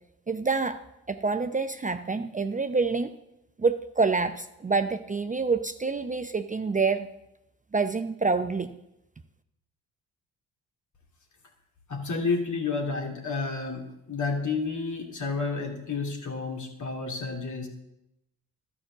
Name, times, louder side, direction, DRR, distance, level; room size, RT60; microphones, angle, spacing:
voice 1, 0.3-0.8 1.1-3.1 3.6-7.1 7.7-8.7, right 4 dB, 20° right, 9 dB, 0.6 m, -27 dB
voice 2, 11.9-17.7, left 4 dB, 50° left, 3 dB, 2.5 m, -30 dB
12.5 x 6.2 x 6.8 m, 0.87 s
hypercardioid pair, 50°, 39 cm